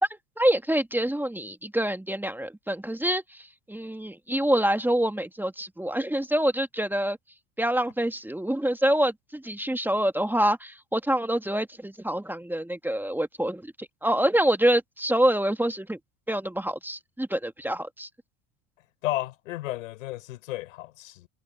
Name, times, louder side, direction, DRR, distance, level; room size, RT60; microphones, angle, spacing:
voice 1, 0.4-3.2 3.7-7.2 7.6-16.0 16.3-18.1, right 1 dB, 5° right, 1.8 m, -26 dB
voice 2, 19.0-21.3, left 16 dB, 85° left, 4.7 m, -33 dB
hypercardioid pair, 80°, 38 cm